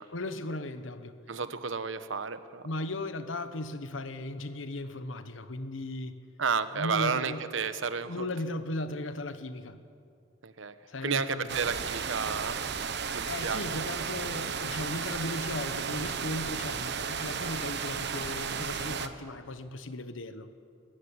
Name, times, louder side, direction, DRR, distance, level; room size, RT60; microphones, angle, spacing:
voice 1, 0.1-1.2 2.6-6.1 6.7-7.5 8.1-9.8 10.9-11.6 13.0-20.5, left 2 dB, 80° left, 10 dB, 1.2 m, -37 dB
voice 2, 1.3-2.6 6.4-8.3 10.4-10.7 11.0-12.7 13.1-13.9, right 5 dB, 80° right, 12 dB, 1.0 m, -32 dB
sound 1, 11.5-19.1, right 6 dB, 60° right, 1.1 m, -34 dB
22.0 x 14.5 x 9.7 m, 2.4 s
head